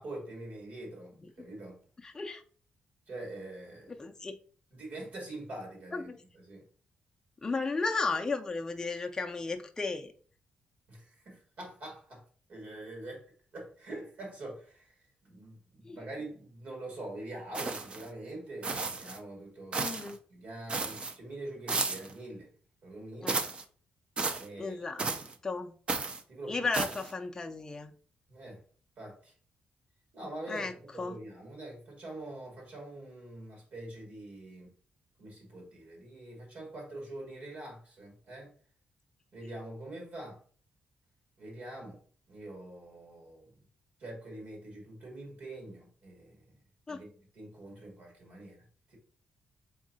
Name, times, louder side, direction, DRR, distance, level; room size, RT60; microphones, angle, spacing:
voice 1, 0.0-1.8 3.1-4.1 4.7-6.6 10.9-12.2 12.5-13.2 13.5-14.9 15.2-22.5 22.8-23.4 24.4-24.8 26.3-26.7 28.3-28.6 29.0-29.3 30.1-34.7 35.2-38.5 39.3-40.4 41.4-42.0 42.3-43.6 44.0-46.5 46.9-47.1 47.3-48.6 48.9-49.0, right 1 dB, 60° right, 2.2 m, -44 dB
voice 2, 2.0-2.4 3.9-4.4 5.9-6.2 7.4-10.1 15.8-16.0 19.8-20.2 23.2-23.3 24.6-25.1 25.4-25.8 26.5-27.9 30.5-30.7 31.0-31.2 46.9-47.0, left 3 dB, 20° left, 0.4 m, -34 dB
sound 1, 17.5-18.1 18.6-19.2 19.7-20.1 20.7-21.1 21.7-22.1 23.3-23.6 24.2-24.5 25.0-25.4 25.9-26.2 26.7-27.1, right 3 dB, 35° right, 0.5 m, -33 dB
3.7 x 3.6 x 4.1 m
cardioid pair, 120°, 3 cm